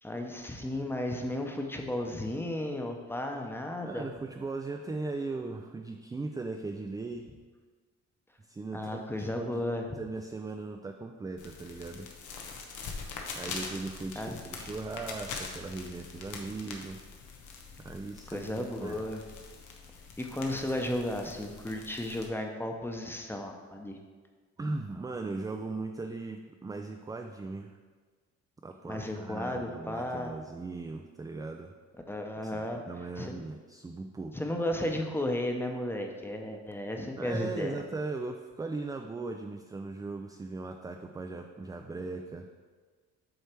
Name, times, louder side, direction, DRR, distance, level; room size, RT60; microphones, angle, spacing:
voice 1, 0.0-4.1 8.7-10.0 14.1-14.4 18.3-19.2 20.2-24.0 28.8-30.3 32.1-33.3 34.3-37.8, left 1 dB, 5° left, 3 dB, 0.8 m, -34 dB
voice 2, 3.8-7.3 8.4-12.1 13.3-17.0 17.8-18.4 18.8-19.0 24.6-27.8 28.6-31.7 32.4-34.4 37.2-42.5, right 3 dB, 15° right, 4 dB, 0.3 m, -38 dB
sound 1, 11.4-22.3, left 4 dB, 85° left, 0.9 m, -44 dB
8.0 x 3.2 x 4.4 m, 1.4 s
cardioid pair, 90°, 30 cm